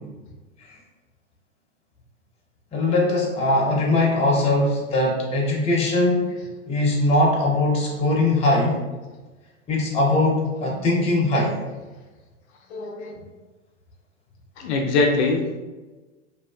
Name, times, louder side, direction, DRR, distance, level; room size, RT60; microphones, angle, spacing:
voice 1, 2.7-6.2 6.7-8.8 9.7-11.6, left 2 dB, 15° left, -2 dB, 0.6 m, -21 dB
voice 2, 12.7-13.2 14.6-15.6, left 3 dB, 60° left, 1 dB, 0.5 m, -23 dB
2.6 x 2.3 x 2.2 m, 1.2 s
hypercardioid pair, 100°, 38 cm